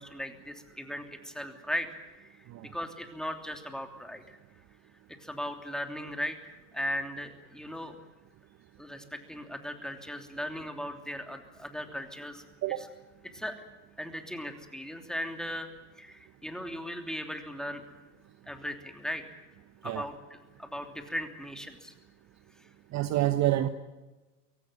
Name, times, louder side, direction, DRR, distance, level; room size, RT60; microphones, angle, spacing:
voice 1, 0.0-1.9 2.7-4.2 5.2-6.3 6.7-7.9 8.8-12.4 12.8-12.9 13.3-13.5 14.0-15.7 16.0-17.8 18.5-19.2 19.8-20.1 20.6-21.9, equal, ahead, 5 dB, 3.0 m, -37 dB
voice 2, 22.9-23.7, right 14 dB, 35° right, 11 dB, 1.1 m, -27 dB
24.0 x 17.5 x 9.0 m, 1.2 s
hypercardioid pair, 105°, 49 cm